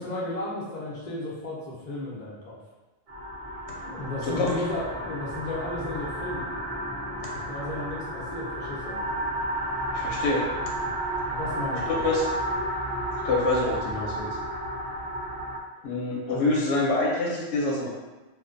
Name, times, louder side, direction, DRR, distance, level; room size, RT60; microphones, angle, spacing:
voice 1, 0.0-2.6 3.8-6.5 7.5-9.0 11.2-12.1 16.3-16.6, left 2 dB, 50° left, -6 dB, 0.7 m, -34 dB
sound 1, 3.1-15.6, right 1 dB, 65° right, 0.8 m, -32 dB
voice 2, 4.2-4.5 7.2-7.4 9.9-10.5 11.9-12.3 13.2-14.4 15.8-17.9, left 2 dB, 90° left, -2 dB, 0.9 m, -26 dB
2.6 x 2.2 x 2.4 m, 1.2 s
omnidirectional pair, 1.1 m